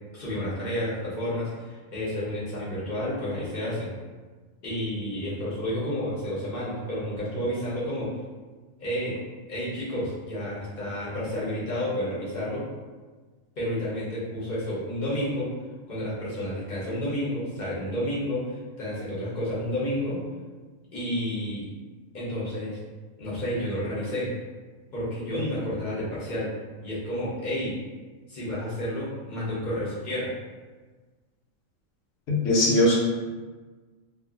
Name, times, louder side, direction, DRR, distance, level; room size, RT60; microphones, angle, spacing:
voice 1, 0.1-3.9 4.6-8.1 8.8-9.2 9.5-12.7 13.6-15.5 15.9-20.2 20.9-21.7 22.1-22.8 23.2-24.3 24.9-26.5 26.8-27.8 28.3-30.3, equal, 40° left, -8 dB, 1.0 m, -30 dB
voice 2, 32.3-32.9, left 1 dB, 75° left, -4 dB, 1.1 m, -20 dB
2.6 x 2.5 x 2.4 m, 1.4 s
omnidirectional pair, 1.4 m